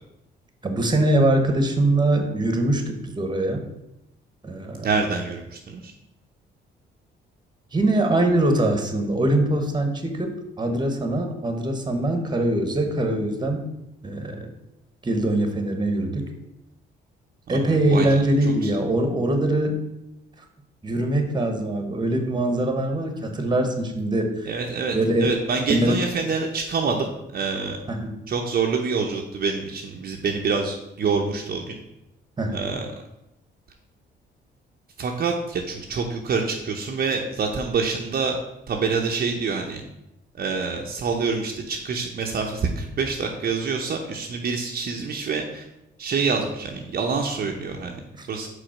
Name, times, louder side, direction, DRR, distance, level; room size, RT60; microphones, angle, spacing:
voice 1, 0.6-3.6 4.4-4.9 7.7-13.7 14.0-14.5 15.0-16.3 17.5-19.8 20.8-24.5 24.9-25.3 25.7-26.0 27.9-28.1 32.4-32.7 48.2-48.3, right 1 dB, 20° right, 5 dB, 1.2 m, -23 dB
voice 2, 4.8-5.9 17.5-18.2 18.6-18.7 24.5-27.8 28.3-31.8 32.5-32.9 35.0-38.4 38.7-39.8 40.4-45.6 46.0-48.0 48.3-48.5, right 5 dB, 50° right, 1 dB, 0.8 m, -26 dB
5.1 x 4.1 x 5.9 m, 0.90 s
cardioid pair, 90°, 20 cm